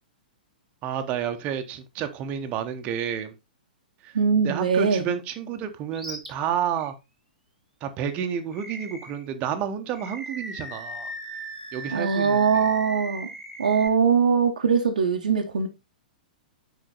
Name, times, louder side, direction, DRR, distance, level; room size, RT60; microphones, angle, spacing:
voice 1, 0.8-3.3 4.0-4.1 4.4-6.9 7.8-11.1 11.7-12.6, right 8 dB, 30° right, 1.0 m, -30 dB
voice 2, 4.1-5.1 11.9-13.3 13.6-15.7, right 6 dB, 65° right, 1.0 m, -22 dB
Animal, 5.9-6.3 6.7-6.9 8.5-9.2 9.9-13.9, right 2 dB, ahead, 1.7 m, -38 dB
6.3 x 5.1 x 3.9 m
figure-of-eight pair, 105°, 5 cm